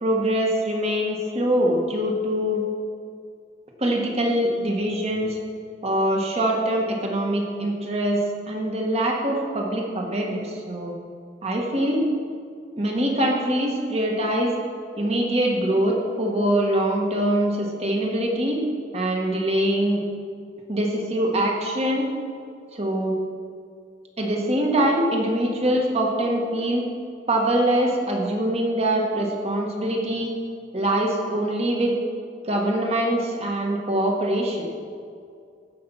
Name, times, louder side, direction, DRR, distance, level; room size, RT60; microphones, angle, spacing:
voice 1, 0.0-2.6 3.8-5.4 5.8-10.9 11.4-12.0 12.8-14.5 15.0-18.6 18.9-20.0 20.7-22.1 22.7-23.2 24.2-26.8 27.3-30.3 30.7-32.0 32.4-34.7, right 1 dB, 35° right, 0 dB, 1.7 m, -23 dB
15.5 x 5.9 x 5.8 m, 2.3 s
head